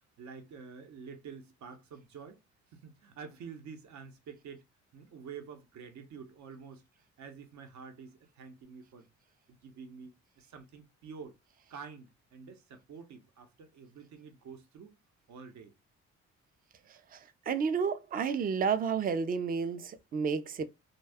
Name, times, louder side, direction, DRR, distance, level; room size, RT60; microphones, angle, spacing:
voice 1, 0.2-2.4 2.7-4.6 4.9-9.1 9.5-11.4 11.7-15.0 15.3-15.7, right 6 dB, 70° right, 0.8 m, -48 dB
voice 2, 16.9-20.6, right 6 dB, 30° right, 0.4 m, -31 dB
2.7 x 2.2 x 3.4 m
cardioid pair, 90°, 30 cm